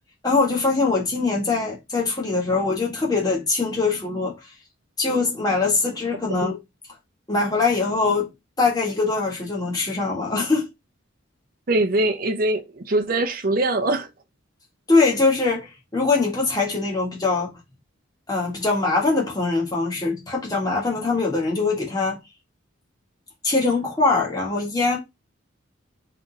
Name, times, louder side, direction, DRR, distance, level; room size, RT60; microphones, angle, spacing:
voice 1, 0.2-4.4 5.0-6.6 7.3-8.3 8.6-10.7 14.9-17.5 18.3-22.2 23.4-25.0, left 3 dB, 20° left, 1.6 m, -22 dB
voice 2, 11.7-14.1, right 2 dB, 45° right, 0.7 m, -22 dB
3.8 x 3.4 x 4.0 m
head